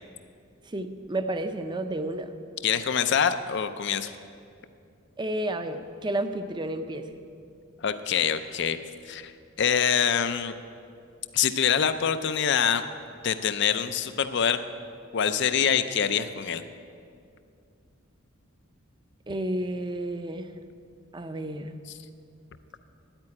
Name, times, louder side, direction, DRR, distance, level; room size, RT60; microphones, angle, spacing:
voice 1, 0.7-2.3 5.2-7.2 19.3-20.5 21.1-21.7, right 1 dB, 20° right, 8 dB, 0.6 m, -31 dB
voice 2, 2.6-4.1 7.8-8.8 9.1-9.3 9.6-10.5 11.3-12.8 13.2-14.6 15.1-16.6, left 8 dB, 55° left, 11 dB, 0.5 m, -25 dB
9.6 x 8.9 x 9.8 m, 2.4 s
head